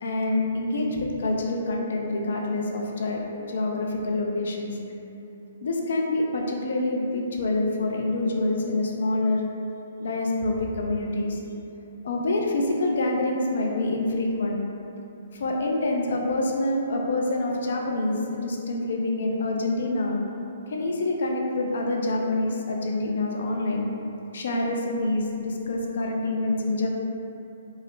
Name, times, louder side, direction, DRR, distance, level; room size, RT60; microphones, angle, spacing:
voice 1, 0.0-4.7 5.6-9.4 10.0-11.4 12.0-14.6 15.3-20.2 20.7-23.9 24.3-26.9, left 2 dB, 65° left, 0 dB, 0.4 m, -26 dB
2.4 x 2.0 x 3.0 m, 2.8 s
figure-of-eight pair, 125°, 0 cm